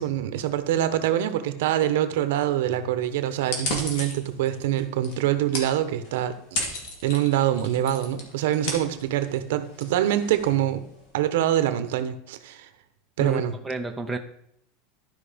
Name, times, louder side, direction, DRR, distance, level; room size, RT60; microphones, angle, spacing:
voice 1, 0.0-6.8 7.0-10.8 11.1-12.7 13.2-13.5, right 12 dB, 70° right, 10 dB, 1.0 m, -25 dB
sound 1, 3.4-11.2, left 2 dB, 55° left, 2.5 m, -36 dB
voice 2, 13.2-14.2, right 2 dB, 5° right, 3 dB, 0.5 m, -30 dB
12.5 x 5.4 x 5.1 m, 0.71 s
supercardioid pair, 175°, 0 cm